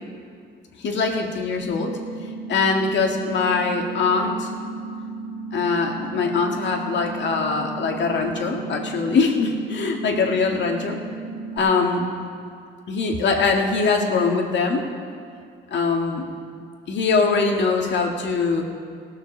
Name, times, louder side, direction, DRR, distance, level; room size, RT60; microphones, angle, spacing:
voice 1, 0.8-1.9 2.5-4.5 5.5-11.0 11.6-12.0 12.9-14.8 15.7-16.2 16.9-18.6, left 4 dB, 65° left, 1 dB, 2.0 m, -22 dB
sound 1, 1.6-11.6, right 3 dB, 30° left, 3.3 m, -34 dB
18.0 x 6.6 x 6.6 m, 2.4 s
cardioid pair, 90°, 20 cm